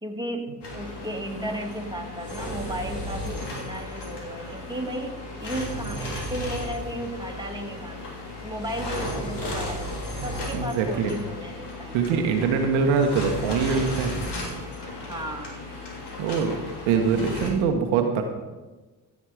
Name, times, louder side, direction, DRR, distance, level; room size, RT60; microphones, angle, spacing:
voice 1, 0.0-8.0 8.4-9.9 10.2-12.2 15.1-15.6, right 1 dB, 10° right, 1 dB, 2.2 m, -34 dB
sound 1, 0.6-17.5, left 1 dB, 60° left, 3.0 m, -35 dB
voice 2, 10.5-11.1 11.9-14.1 16.2-16.5 16.8-18.2, right 5 dB, 75° right, 4 dB, 1.2 m, -23 dB
15.5 x 7.2 x 4.8 m, 1.2 s
hypercardioid pair, 50°, 47 cm